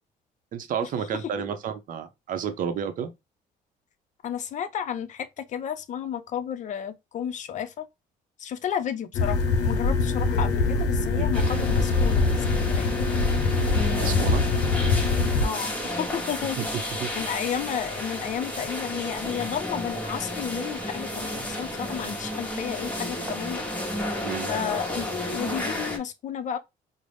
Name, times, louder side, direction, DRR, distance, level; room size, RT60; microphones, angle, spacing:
voice 1, 0.5-3.1 11.2-11.6 14.0-14.5 16.6-16.7 17.0-17.1 24.2-24.5, right 8 dB, 55° right, 0.6 m, -31 dB
voice 2, 4.2-7.9 8.4-13.1 15.4-23.7 24.5-26.6, left 9 dB, 45° left, 0.5 m, -32 dB
sound 1, 9.1-15.5, left 3 dB, 90° left, 0.6 m, -23 dB
sound 2, 11.3-26.0, equal, 10° left, 0.9 m, -32 dB
3.9 x 2.0 x 3.2 m
cardioid pair, 110°, 17 cm